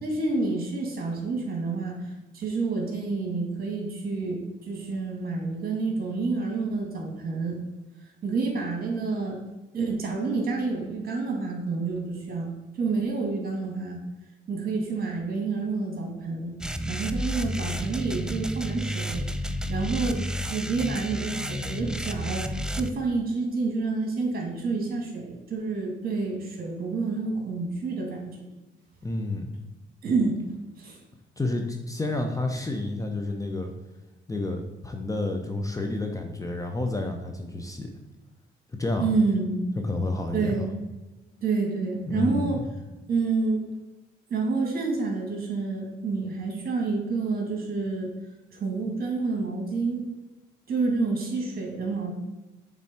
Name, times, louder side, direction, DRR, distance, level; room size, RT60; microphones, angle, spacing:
voice 1, 0.0-7.6 8.2-9.4 9.7-12.5 12.8-14.0 14.5-16.6 16.9-19.2 19.7-28.5 30.0-30.4 30.8-31.0 39.0-39.8 40.3-40.7 41.4-42.6 43.1-43.6 44.3-48.1 48.6-50.1 50.7-52.1, right 3 dB, 50° right, 1 dB, 2.1 m, -28 dB
sound 1, 16.6-22.9, equal, 5° right, 0.4 m, -31 dB
voice 2, 29.0-29.5 31.4-33.7 34.3-37.9 38.7-39.1 39.8-40.6 42.1-42.6, left 2 dB, 15° left, 4 dB, 0.8 m, -30 dB
7.1 x 3.8 x 4.3 m, 1.1 s
cardioid pair, 90°, 20 cm